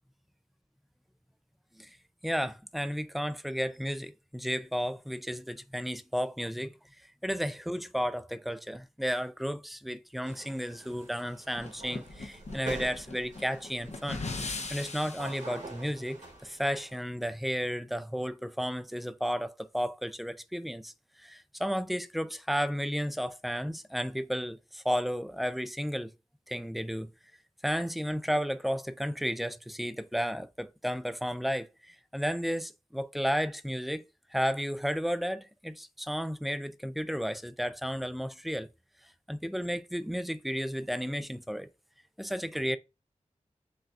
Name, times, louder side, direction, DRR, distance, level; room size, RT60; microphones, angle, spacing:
voice 1, 2.2-6.8 7.2-14.2 14.7-20.9 21.2-26.1 26.5-27.1 27.6-34.0 34.3-38.7 39.3-41.7 42.2-42.8, equal, ahead, 0.3 m, -33 dB
sound 1, 10.2-17.0, right 2 dB, 85° right, 1.5 m, -46 dB
sound 2, 11.6-15.4, left 3 dB, 60° left, 0.6 m, -39 dB
5.6 x 2.3 x 2.6 m
wide cardioid pair, 70°, 13 cm